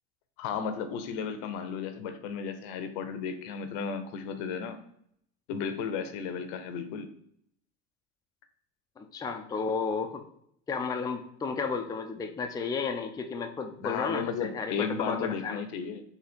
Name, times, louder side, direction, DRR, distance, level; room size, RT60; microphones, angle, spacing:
voice 1, 0.4-4.8 5.5-7.1 13.8-16.0, left 6 dB, 70° left, 9 dB, 0.7 m, -34 dB
voice 2, 9.0-10.2 10.7-15.6, left 5 dB, 10° left, 5 dB, 0.4 m, -33 dB
4.0 x 2.8 x 4.3 m, 0.70 s
supercardioid pair, 100°, 31 cm